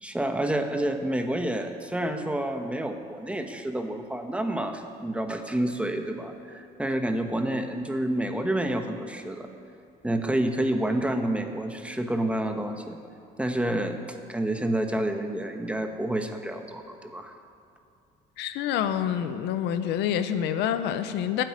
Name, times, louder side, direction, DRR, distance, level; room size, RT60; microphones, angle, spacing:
voice 1, 0.0-9.5 10.0-13.0 13.4-14.0 14.3-17.3, right 1 dB, 5° right, 5 dB, 1.2 m, -29 dB
voice 2, 18.4-21.4, left 9 dB, 85° left, 10 dB, 0.8 m, -27 dB
14.0 x 7.9 x 9.7 m, 2.6 s
cardioid pair, 110°, 17 cm